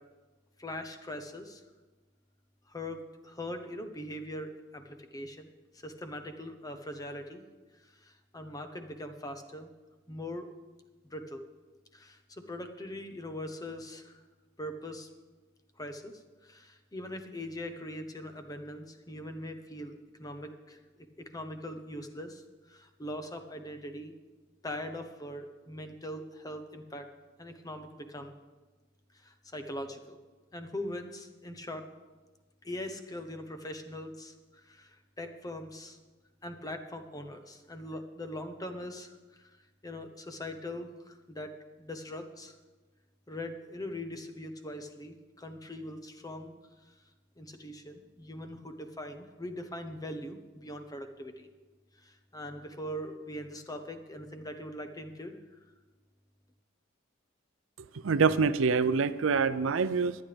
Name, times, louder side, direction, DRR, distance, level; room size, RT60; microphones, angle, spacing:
voice 1, 0.6-1.6 2.7-7.4 7.8-9.7 10.1-10.5 11.1-11.4 11.9-14.2 14.6-15.1 15.8-19.9 20.2-20.8 21.2-22.4 22.7-24.1 24.6-27.1 27.4-28.3 29.1-30.2 30.5-31.9 32.6-36.0 36.4-39.6 39.8-41.5 41.8-42.5 43.3-46.6 46.9-47.0 47.4-51.5 52.0-55.4, left 1 dB, 20° left, 6 dB, 0.9 m, -41 dB
voice 2, 58.0-60.1, right 5 dB, 80° right, 14 dB, 0.5 m, -25 dB
22.0 x 8.7 x 3.4 m, 1.3 s
head